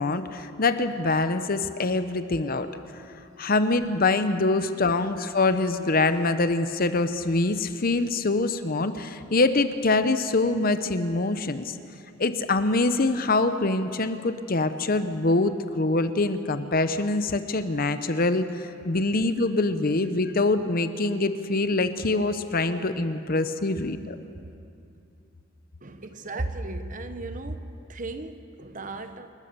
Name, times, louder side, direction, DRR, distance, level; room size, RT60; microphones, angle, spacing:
voice 1, 0.0-2.7 3.4-11.8 12.2-24.2, left 2 dB, 45° left, 10 dB, 0.8 m, -24 dB
voice 2, 25.8-29.3, right 2 dB, 40° right, 9 dB, 1.0 m, -35 dB
28.5 x 13.5 x 6.8 m, 2.6 s
head